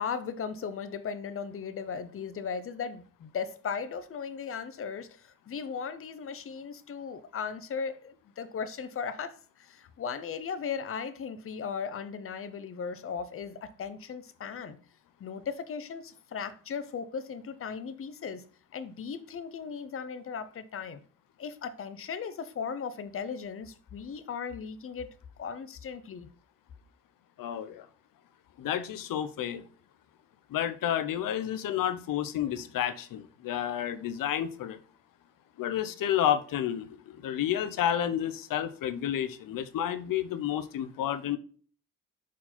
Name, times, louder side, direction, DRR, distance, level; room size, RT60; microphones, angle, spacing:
voice 1, 0.0-14.8 15.2-18.4 18.7-21.0 21.4-25.1 25.4-26.3, left 6 dB, 45° left, 0.6 m, -37 dB
voice 2, 27.4-27.9 28.6-29.6 30.5-34.8 35.6-36.9 37.2-41.4, left 10 dB, 85° left, 0.7 m, -30 dB
5.9 x 4.5 x 4.2 m
wide cardioid pair, 150°, 32 cm